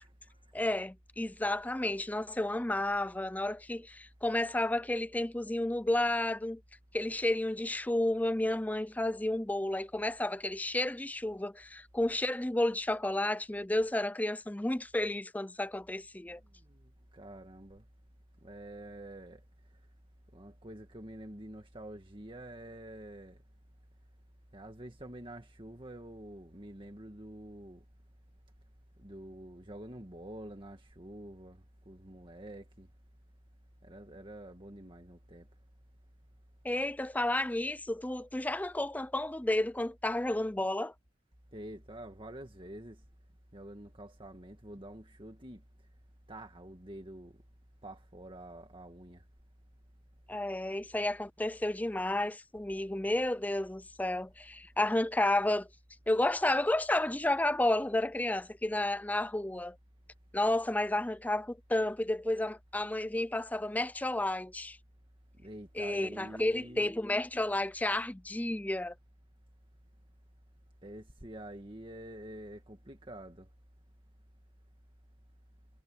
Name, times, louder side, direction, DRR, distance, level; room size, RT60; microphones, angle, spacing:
voice 1, 0.0-0.4 16.6-17.8 18.4-19.4 20.3-23.4 24.5-27.8 29.0-32.9 33.8-35.5 41.5-43.0 43.5-45.6 46.3-47.4 47.8-49.2 65.4-66.9 70.8-73.5, right 1 dB, 30° right, 2.0 m, -47 dB
voice 2, 0.5-6.6 6.9-16.4 36.6-40.9 50.3-55.7 56.1-59.8 60.3-64.8 65.8-68.9, left 1 dB, 10° left, 0.5 m, -31 dB
head